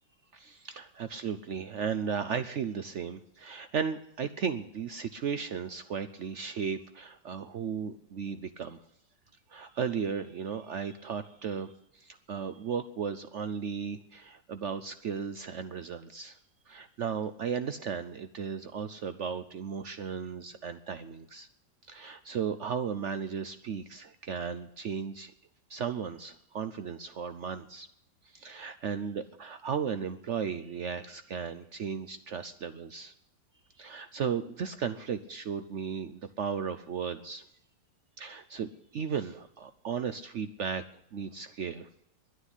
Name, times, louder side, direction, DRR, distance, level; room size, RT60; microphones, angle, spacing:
voice 1, 0.3-8.8 9.5-16.4 16.7-21.5 21.9-25.3 25.7-27.9 28.3-33.1 33.8-37.4 38.2-40.8 41.1-41.9, right 6 dB, 75° right, 11 dB, 0.6 m, -35 dB
11.5 x 9.8 x 9.9 m, 0.78 s
omnidirectional pair, 2.0 m